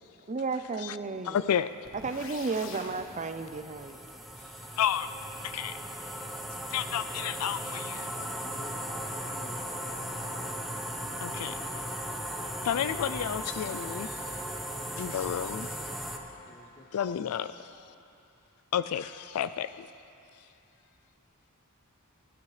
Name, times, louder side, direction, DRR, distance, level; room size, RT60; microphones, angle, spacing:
voice 1, 0.3-1.4 2.0-4.0, right 4 dB, 30° right, 9 dB, 0.5 m, -33 dB
voice 2, 1.2-1.7 4.8-5.1 5.4-5.8 6.7-8.1 11.2-11.6 12.6-14.2 14.9-15.7 16.9-17.9 18.7-19.9, left 9 dB, 75° left, 13 dB, 0.3 m, -31 dB
sound 1, 1.8-3.0, left 4 dB, 60° left, 1.2 m, -44 dB
sound 2, 1.8-16.2, equal, ahead, 0.9 m, -37 dB
voice 3, 4.0-4.8 8.0-9.8 12.3-12.4 16.4-16.9, left 2 dB, 30° left, 0 dB, 0.9 m, -53 dB
25.0 x 12.0 x 3.3 m, 2.8 s
head